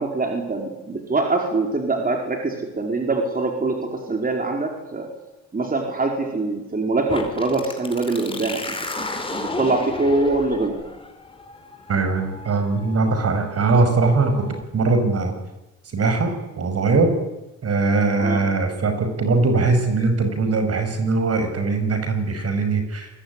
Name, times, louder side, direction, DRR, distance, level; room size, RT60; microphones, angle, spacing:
voice 1, 0.0-5.1 5.5-10.8 18.2-18.4, right 3 dB, 30° right, 2 dB, 4.9 m, -24 dB
sound 1, 7.1-14.6, left 2 dB, 15° left, 4.9 m, -34 dB
voice 2, 11.9-14.4 14.7-15.3 15.9-17.1 17.6-23.1, right 3 dB, 55° right, 7 dB, 6.6 m, -21 dB
27.0 x 22.0 x 10.0 m, 1.0 s
cardioid pair, 90°, 30 cm